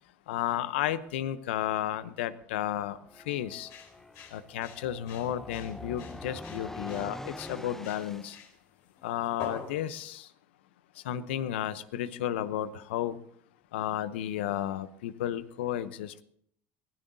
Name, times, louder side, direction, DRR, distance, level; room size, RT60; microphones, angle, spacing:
voice 1, 0.3-3.0 3.3-3.7 4.3-8.4 9.0-10.3 11.0-13.2 13.7-16.2, left 11 dB, 85° left, 14 dB, 0.8 m, -33 dB
sound 1, 2.9-8.4, left 1 dB, 5° left, 0.8 m, -44 dB
sound 2, 3.6-10.0, left 6 dB, 65° left, 4.2 m, -45 dB
24.0 x 16.5 x 2.7 m, 0.67 s
supercardioid pair, 90°, 6 cm